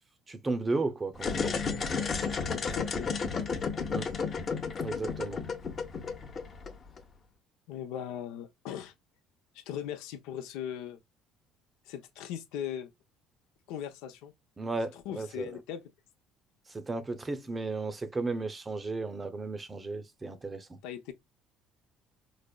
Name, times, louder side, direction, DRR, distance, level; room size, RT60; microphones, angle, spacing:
voice 1, 0.3-1.6 3.9-4.1 4.8-5.4 14.6-15.6 16.7-20.8, right 3 dB, 20° right, 0.6 m, -34 dB
sound 1, 1.1-7.0, left 5 dB, 35° left, 0.8 m, -32 dB
voice 2, 2.2-3.2 7.7-8.9 9.5-11.0 11.9-12.9 13.7-14.3 15.0-15.8 20.8-21.1, left 9 dB, 85° left, 0.6 m, -39 dB
5.0 x 2.0 x 2.2 m
cardioid pair, 120°, 0 cm